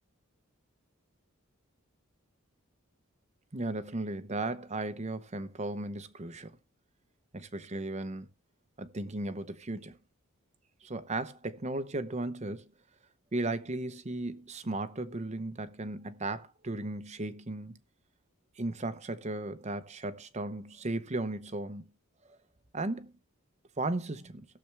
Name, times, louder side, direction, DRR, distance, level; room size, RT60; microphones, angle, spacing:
voice 1, 3.5-6.5 7.3-8.3 8.8-10.0 10.8-12.7 13.3-17.8 18.6-21.9 22.7-23.1 23.8-24.4, right 2 dB, 30° right, 0.8 m, -36 dB
17.0 x 6.9 x 3.4 m
head